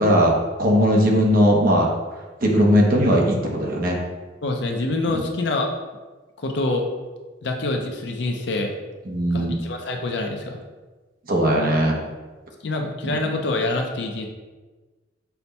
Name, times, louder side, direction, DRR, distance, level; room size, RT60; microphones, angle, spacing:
voice 1, 0.0-1.9 2.4-4.0 5.1-5.2 9.1-9.6 11.3-12.0 13.0-13.2, equal, 45° right, -1 dB, 0.8 m, -19 dB
voice 2, 4.4-5.7 6.4-6.8 7.4-8.7 9.3-10.6 12.6-14.3, left 2 dB, 60° left, 3 dB, 0.6 m, -26 dB
5.7 x 2.2 x 4.1 m, 1.3 s
head